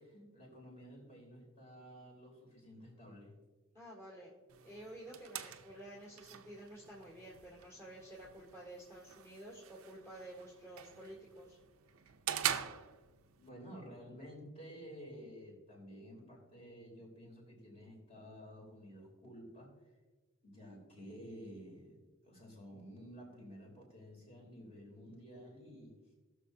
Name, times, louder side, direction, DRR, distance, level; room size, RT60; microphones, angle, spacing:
voice 1, 0.0-3.4 13.4-19.7 20.4-26.0, equal, 30° left, -1 dB, 3.2 m, -52 dB
voice 2, 3.7-4.3 4.6-11.6, right 1 dB, 15° left, -7 dB, 1.9 m, -51 dB
sound 1, 4.5-13.5, right 9 dB, 90° right, 0.6 m, -44 dB
19.0 x 6.4 x 2.7 m, 1.2 s
head